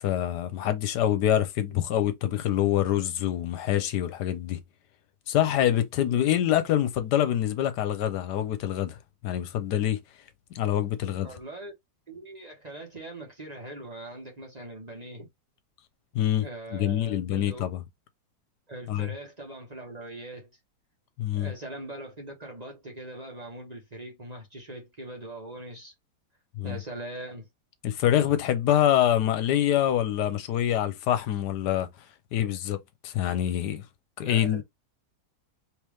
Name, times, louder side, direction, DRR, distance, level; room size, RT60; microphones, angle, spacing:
voice 1, 0.0-4.6 5.3-9.0 9.2-10.0 10.5-11.3 16.1-16.5 16.7-17.8 18.9-19.1 21.2-21.5 26.6-26.8 27.8-31.9 32.3-32.8 33.0-33.8 34.2-34.6, left 11 dB, 75° left, 1.2 m, -25 dB
voice 2, 11.2-11.7 12.1-15.3 16.4-17.7 18.7-20.5 21.3-25.9 26.6-27.5 34.2-34.6, right 2 dB, 25° right, 1.1 m, -41 dB
3.5 x 3.0 x 3.1 m
omnidirectional pair, 1.8 m